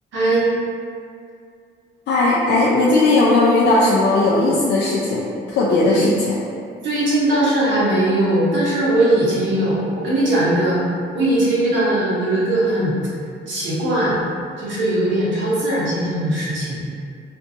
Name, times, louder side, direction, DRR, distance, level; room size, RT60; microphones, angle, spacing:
voice 1, 0.1-0.5 5.8-6.1 6.8-10.8 11.1-12.9 13.5-14.2 14.6-16.8, right 1 dB, 70° right, -7 dB, 0.9 m, -19 dB
voice 2, 2.1-6.4, left 2 dB, 65° left, -6 dB, 0.4 m, -17 dB
2.5 x 2.2 x 2.6 m, 2.3 s
cardioid pair, 90°, 20 cm